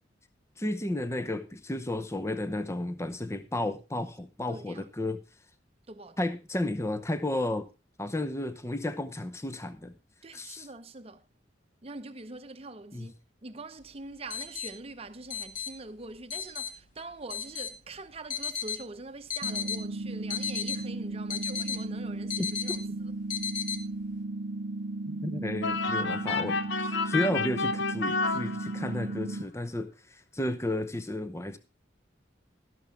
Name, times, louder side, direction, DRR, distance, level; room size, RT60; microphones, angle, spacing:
voice 1, 0.6-5.2 6.2-7.7 8.0-9.9 10.3-10.7 12.9-13.1 25.1-31.6, left 1 dB, 15° left, 0.7 m, -33 dB
voice 2, 4.5-4.9 5.9-6.2 10.2-11.3 11.8-13.1 13.4-23.1, right 2 dB, 30° right, 0.8 m, -44 dB
sound 1, 13.8-24.2, left 7 dB, 45° left, 1.4 m, -36 dB
sound 2, 19.4-29.4, right 2 dB, 70° right, 0.8 m, -35 dB
sound 3, 25.6-29.1, left 4 dB, 70° left, 0.8 m, -30 dB
12.5 x 11.5 x 3.5 m
head